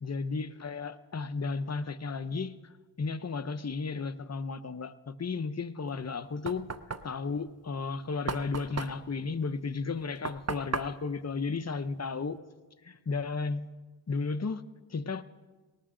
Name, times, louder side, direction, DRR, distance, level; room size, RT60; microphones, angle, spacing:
voice 1, 0.0-2.7 3.0-6.7 7.0-12.4 12.8-13.7 14.1-14.6 14.9-15.2, left 4 dB, 35° left, 10 dB, 0.7 m, -34 dB
Knock, 5.9-12.4, right 4 dB, 35° right, 0.6 m, -39 dB
19.5 x 18.5 x 3.8 m, 1.3 s
wide cardioid pair, 60°, 46 cm